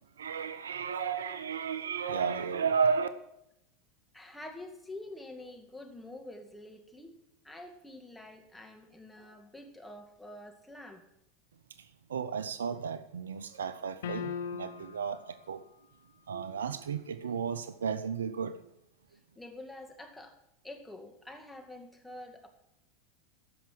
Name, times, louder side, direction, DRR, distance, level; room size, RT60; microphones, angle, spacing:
voice 1, 0.2-3.1 12.1-15.6 16.3-18.6, right 6 dB, 85° right, 0.6 m, -33 dB
voice 2, 4.1-7.2 7.4-11.0 19.4-20.3 20.6-22.5, left 1 dB, 5° left, 2.1 m, -47 dB
sound 1, 14.0-15.1, left 7 dB, 75° left, 1.1 m, -37 dB
14.5 x 5.9 x 7.5 m
hypercardioid pair, 95°, 0 cm